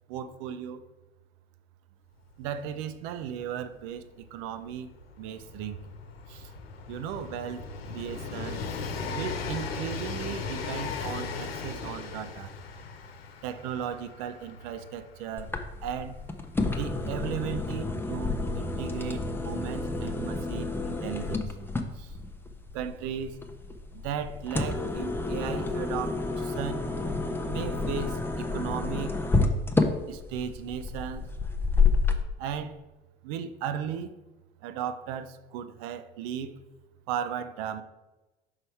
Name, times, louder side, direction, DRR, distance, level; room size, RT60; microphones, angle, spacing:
voice 1, 0.1-0.8 2.4-4.9 5.2-5.8 6.3-6.5 6.9-8.7 9.1-12.5 13.4-15.6 15.8-16.2 16.7-21.7 21.9-22.2 22.7-23.4 23.9-26.9 27.5-29.2 30.1-31.3 32.4-32.8 33.2-34.2 34.6-36.5 37.1-37.8, right 8 dB, 55° right, 11 dB, 0.7 m, -36 dB
Train, 2.3-2.4 2.6-19.2 20.2-20.3, left 5 dB, 75° left, 0.8 m, -38 dB
sound 1, 15.4-32.2, left 3 dB, 5° left, 0.7 m, -30 dB
5.7 x 5.4 x 4.6 m, 1.1 s
figure-of-eight pair, 70°, 30 cm